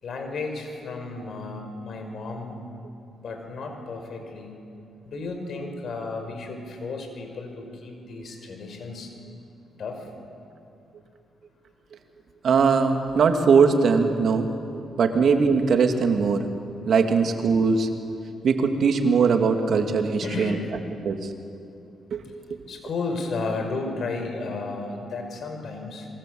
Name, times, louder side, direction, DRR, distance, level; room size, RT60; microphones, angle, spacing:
voice 1, 0.0-2.6 3.2-4.6 5.1-9.1 9.8-10.1 20.2-20.7 22.7-26.1, left 3 dB, 60° left, 4 dB, 5.3 m, -33 dB
voice 2, 12.4-14.5 15.0-16.5 16.9-17.9 18.4-20.6 21.0-21.3 22.1-22.2 22.5-22.6, right 5 dB, 65° right, 5 dB, 2.5 m, -20 dB
27.5 x 23.0 x 7.9 m, 2.6 s
cardioid pair, 80°, 0 cm